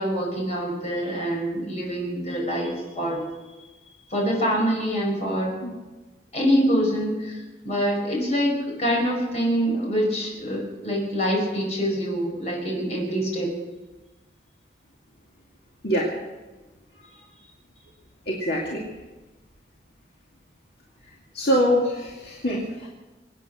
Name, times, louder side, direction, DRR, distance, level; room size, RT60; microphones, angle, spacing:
voice 1, 0.0-3.3 4.1-5.5 6.3-13.5, equal, 40° left, -1 dB, 5.6 m, -25 dB
voice 2, 18.3-18.9 21.3-22.9, equal, 60° left, -3 dB, 2.3 m, -24 dB
24.0 x 9.1 x 6.5 m, 1.2 s
head